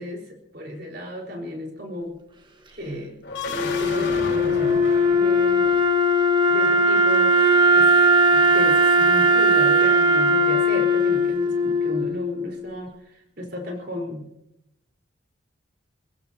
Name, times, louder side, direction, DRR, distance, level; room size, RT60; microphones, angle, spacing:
voice 1, 0.0-2.2 2.7-5.8 6.5-7.3 7.7-8.0 8.3-12.9 13.4-14.3, equal, 55° right, 1 dB, 4.5 m, -34 dB
sound 1, 3.2-6.2, left 3 dB, 65° left, 4.2 m, -33 dB
Wind instrument woodwind instrument, 3.5-12.6, equal, 25° right, 1.4 m, -19 dB
28.5 x 16.0 x 2.9 m, 0.83 s
head